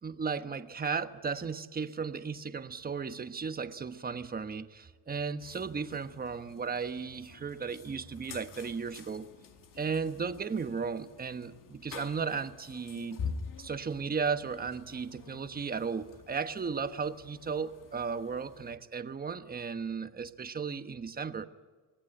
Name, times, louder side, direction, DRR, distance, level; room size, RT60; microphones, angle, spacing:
voice 1, 0.0-9.3 9.8-13.2 13.6-21.5, right 5 dB, 25° right, 10 dB, 1.2 m, -35 dB
sound 1, 5.4-18.8, left 5 dB, 55° left, 2.1 m, -47 dB
24.5 x 17.5 x 8.8 m, 1.4 s
cardioid pair, 120°, 38 cm